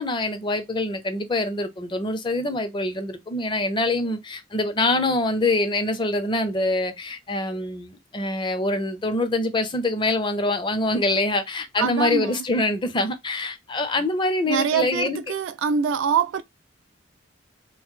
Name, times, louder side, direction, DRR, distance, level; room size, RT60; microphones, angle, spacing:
voice 1, 0.0-15.2, left 2 dB, 25° left, 0.5 m, -25 dB
voice 2, 11.8-12.4 14.5-16.4, right 7 dB, 75° right, 0.3 m, -24 dB
2.8 x 2.5 x 3.6 m
head